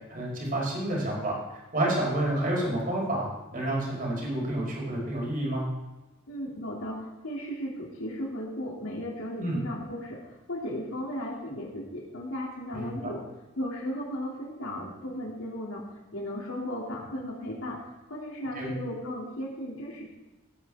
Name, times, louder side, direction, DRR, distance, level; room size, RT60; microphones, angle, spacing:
voice 1, 0.1-3.3 3.5-5.6 9.4-9.6 12.7-13.1 18.5-18.7, right 1 dB, 40° right, -3 dB, 4.8 m, -29 dB
voice 2, 6.3-13.2 13.6-15.9 16.1-17.8 18.1-20.1, equal, 75° left, -2 dB, 2.8 m, -36 dB
17.0 x 9.4 x 3.7 m, 1.1 s
head